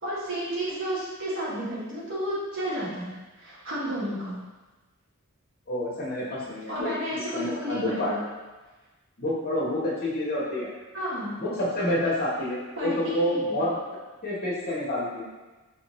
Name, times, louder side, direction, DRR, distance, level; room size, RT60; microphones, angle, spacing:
voice 1, 0.0-4.4 6.7-8.2 10.9-11.4 12.8-13.6, equal, 60° right, -8 dB, 1.3 m, -32 dB
voice 2, 5.7-8.3 9.2-10.7 11.4-13.8 14.2-15.3, left 1 dB, 45° left, -6 dB, 1.0 m, -28 dB
4.6 x 2.5 x 3.0 m, 1.2 s
head